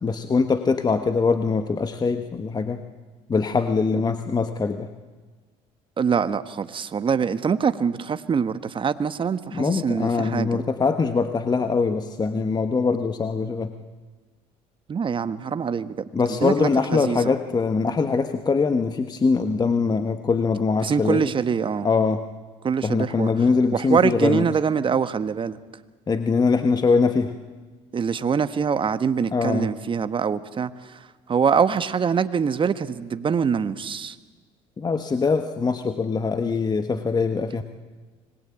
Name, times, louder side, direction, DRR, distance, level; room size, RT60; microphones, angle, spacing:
voice 1, 0.0-2.8 3.3-4.9 9.5-13.7 16.1-21.2 21.8-22.2 22.8-24.5 26.1-27.3 29.3-29.7 34.8-37.6, left 4 dB, 25° left, 8 dB, 1.3 m, -22 dB
voice 2, 6.0-10.6 14.9-16.0 16.3-17.3 20.8-21.9 22.6-23.3 23.7-25.6 27.9-31.0 31.3-34.1, right 6 dB, 35° right, 12 dB, 1.3 m, -24 dB
25.5 x 20.5 x 8.8 m, 1.4 s
supercardioid pair, 85°, 15 cm